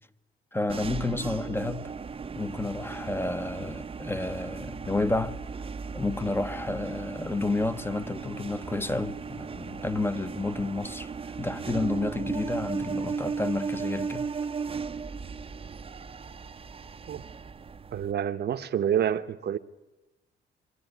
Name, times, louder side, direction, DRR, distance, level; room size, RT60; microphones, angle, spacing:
voice 1, 0.5-1.9 2.4-5.4 5.9-11.1 11.4-14.3, left 2 dB, 10° left, 0.8 m, -30 dB
sound 1, 0.7-18.1, right 5 dB, 30° right, 0.7 m, -36 dB
voice 2, 17.9-19.6, right 9 dB, 55° right, 0.9 m, -28 dB
22.5 x 14.0 x 9.4 m
cardioid pair, 90°, 20 cm